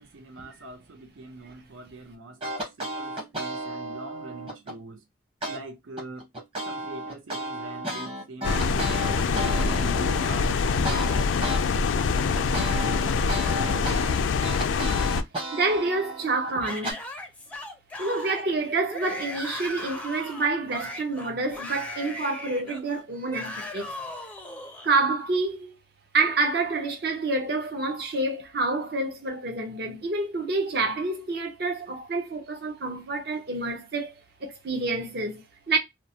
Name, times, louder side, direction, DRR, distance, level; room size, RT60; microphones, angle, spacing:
voice 1, 0.0-5.1 5.4-6.3 6.6-13.2, right 2 dB, 90° right, 0.5 m, -44 dB
sound 1, 2.4-4.8 5.4-5.6 6.0-11.6 12.0-16.9, equal, 30° right, 0.9 m, -33 dB
sound 2, 8.4-15.2, left 5 dB, 75° left, 0.3 m, -24 dB
voice 2, 15.5-17.0 18.0-23.9 24.8-25.7 26.1-34.1 34.4-35.8, right 3 dB, 55° right, 0.7 m, -28 dB
Yell / Screaming, 16.6-24.9, left 1 dB, 5° left, 0.4 m, -38 dB
2.9 x 2.0 x 2.7 m
head